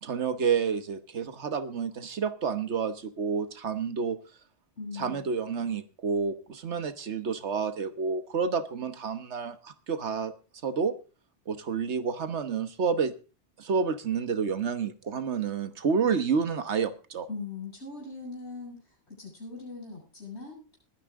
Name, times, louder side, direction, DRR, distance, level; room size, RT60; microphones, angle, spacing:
voice 1, 0.0-4.2 4.9-10.3 10.6-10.9 11.5-13.1 13.6-17.3, right 6 dB, 75° right, 11 dB, 1.4 m, -29 dB
voice 2, 4.8-5.3 17.3-20.8, left 4 dB, 70° left, -2 dB, 8.2 m, -41 dB
21.0 x 9.8 x 3.6 m, 0.34 s
omnidirectional pair, 1.2 m